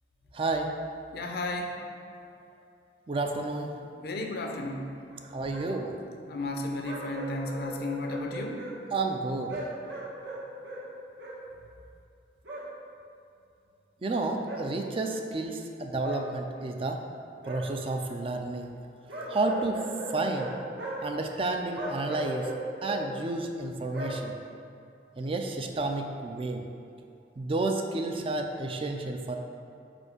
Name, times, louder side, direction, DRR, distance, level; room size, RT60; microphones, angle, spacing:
voice 1, 0.3-0.7 3.1-3.7 5.3-5.9 8.9-9.6 14.0-17.0 17.4-18.7 19.3-19.8 20.1-20.5 21.0-22.5 22.8-24.3 25.2-26.6 27.4-29.4, right 2 dB, 30° right, 4 dB, 0.4 m, -31 dB
voice 2, 1.1-1.8 4.0-5.0 6.3-8.7, left 2 dB, 60° left, 3 dB, 0.6 m, -33 dB
sound 1, 5.1-5.2 5.5-5.7 6.8-8.7 9.5-10.8 11.2-11.4 12.4-12.6 14.4-14.6 16.0-16.2 17.4-17.6 19.1-20.5 20.8-21.0 21.7-23.0 23.9-24.2, right 1 dB, 80° right, 1.3 m, -38 dB
5.0 x 4.4 x 4.9 m, 2.6 s
head